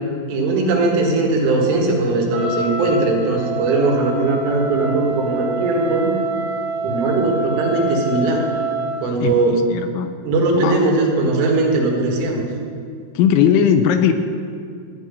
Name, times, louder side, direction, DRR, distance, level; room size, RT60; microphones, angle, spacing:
voice 1, 0.3-6.1 6.8-8.4 9.0-9.6 10.3-12.4, right 3 dB, 85° right, 0 dB, 4.3 m, -19 dB
Wind instrument woodwind instrument, 2.3-9.1, right 3 dB, 65° right, 3.9 m, -27 dB
voice 2, 9.2-10.1 10.5-10.9 13.2-14.1, left 8 dB, 80° left, 8 dB, 2.8 m, -18 dB
14.0 x 5.7 x 9.6 m, 2.3 s
omnidirectional pair, 5.6 m